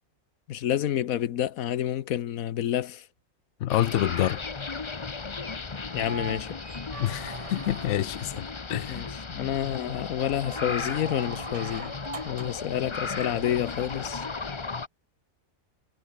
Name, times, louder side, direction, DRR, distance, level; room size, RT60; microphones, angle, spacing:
voice 1, 0.5-3.0 5.9-6.6 8.9-11.9 12.2-14.2, left 11 dB, 90° left, 1.3 m, -29 dB
voice 2, 3.6-4.4 7.0-9.0, left 13 dB, 65° left, 0.9 m, -27 dB
sound 1, 3.7-14.9, left 4 dB, 25° left, 0.8 m, -35 dB
sound 2, 5.8-8.3 10.2-12.7 14.3-14.4, right 3 dB, 25° right, 1.7 m, -42 dB
omnidirectional pair, 1.4 m